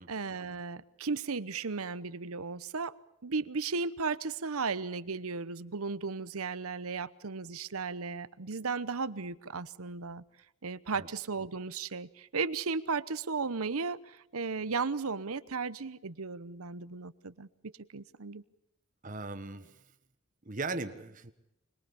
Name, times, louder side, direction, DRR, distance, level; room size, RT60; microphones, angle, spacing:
voice 1, 0.1-2.9 3.2-10.2 10.6-17.5 17.9-18.4, right 4 dB, 80° right, 15 dB, 0.9 m, -35 dB
voice 2, 19.0-19.8 20.4-21.3, right 3 dB, 35° right, 8 dB, 1.5 m, -38 dB
25.5 x 22.0 x 7.0 m, 0.81 s
head